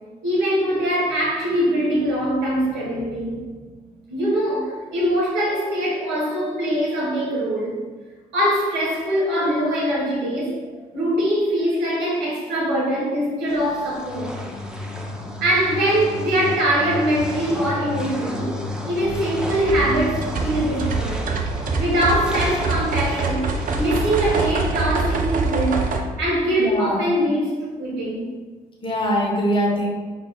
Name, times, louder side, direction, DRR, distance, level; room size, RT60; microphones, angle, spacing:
voice 1, 0.2-3.5 4.1-7.8 8.3-10.5 10.9-14.3 15.4-18.6 18.9-21.3 21.8-23.5 23.8-25.9 26.2-28.3, equal, 70° right, -5 dB, 1.3 m, -22 dB
sound 1, 13.5-24.5, equal, 5° right, 0.6 m, -36 dB
sound 2, 14.0-21.4, left 3 dB, 80° left, 0.5 m, -33 dB
sound 3, 19.0-26.0, right 4 dB, 45° right, 0.6 m, -25 dB
voice 2, 26.6-27.1 28.8-29.9, equal, 25° left, -2 dB, 1.0 m, -22 dB
4.6 x 3.6 x 2.3 m, 1.4 s
hypercardioid pair, 45°, 19 cm